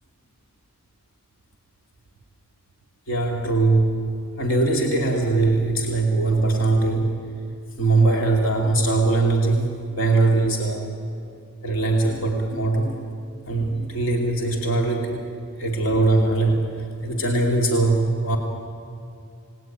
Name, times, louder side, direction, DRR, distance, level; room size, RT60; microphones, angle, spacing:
voice 1, 3.1-4.1 4.4-7.2 7.8-10.9 11.6-13.0 13.5-15.2 15.6-18.4, right 2 dB, 65° left, 1 dB, 2.7 m, -21 dB
28.5 x 19.5 x 9.3 m, 2.5 s
head